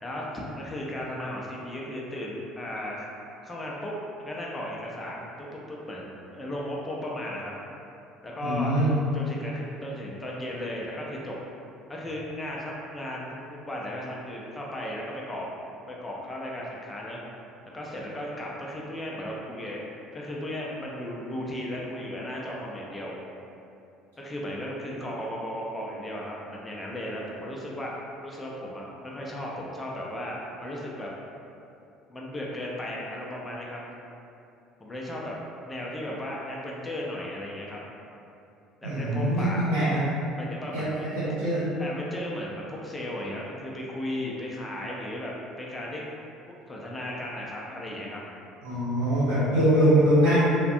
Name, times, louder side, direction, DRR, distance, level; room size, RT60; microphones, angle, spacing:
voice 1, 0.0-3.1 3.4-7.5 8.2-8.7 9.1-11.4 11.9-15.5 15.9-17.2 17.7-19.8 20.1-23.2 24.2-27.9 28.2-31.1 32.1-33.8 34.8-35.4 35.6-37.8 38.8-39.7 40.3-41.1 41.8-45.3 45.6-46.0 46.7-48.2, left 1 dB, 20° left, -4 dB, 0.5 m, -35 dB
voice 2, 8.4-9.0 38.8-40.0 40.7-40.8 41.1-41.7 48.6-50.4, right 1 dB, 80° right, -12 dB, 0.7 m, -23 dB
2.5 x 2.1 x 2.5 m, 2.7 s
hypercardioid pair, 60°, 0 cm